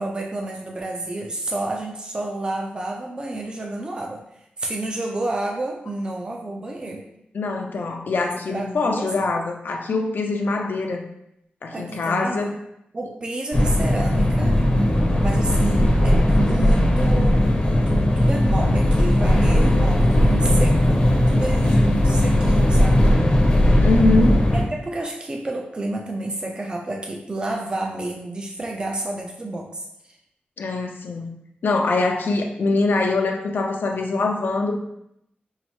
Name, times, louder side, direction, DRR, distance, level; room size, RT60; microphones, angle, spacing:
voice 1, 0.0-4.2 4.6-7.0 8.5-9.3 11.7-12.5 12.9-14.6 15.2-17.4 17.9-23.1 24.7-29.8, right 2 dB, 25° right, 0 dB, 0.4 m, -30 dB
voice 2, 7.3-11.1 11.6-12.5 23.8-24.4 30.6-31.3 31.6-34.8, left 3 dB, 70° left, 3 dB, 0.5 m, -23 dB
sound 1, 13.5-24.6, left 1 dB, 30° left, 0.7 m, -18 dB
5.5 x 2.0 x 3.0 m, 0.78 s
wide cardioid pair, 130°, 3 cm